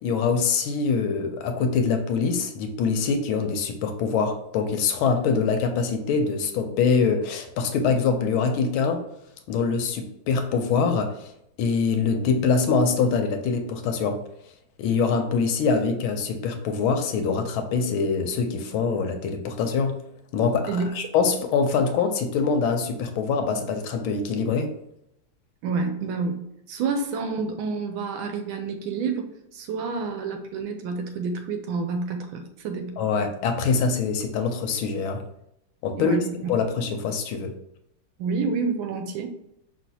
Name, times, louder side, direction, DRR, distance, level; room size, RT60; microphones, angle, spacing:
voice 1, 0.0-9.1 9.5-11.3 11.6-14.2 14.8-20.0 20.3-20.7 20.9-24.7 33.0-35.2 35.8-36.2 36.5-37.5, left 5 dB, 80° left, 6 dB, 1.4 m, -24 dB
voice 2, 25.6-26.4 26.7-29.3 29.5-33.0 36.0-36.3 38.2-39.3, right 4 dB, 75° right, 6 dB, 1.3 m, -28 dB
5.3 x 3.1 x 2.8 m, 0.78 s
omnidirectional pair, 2.4 m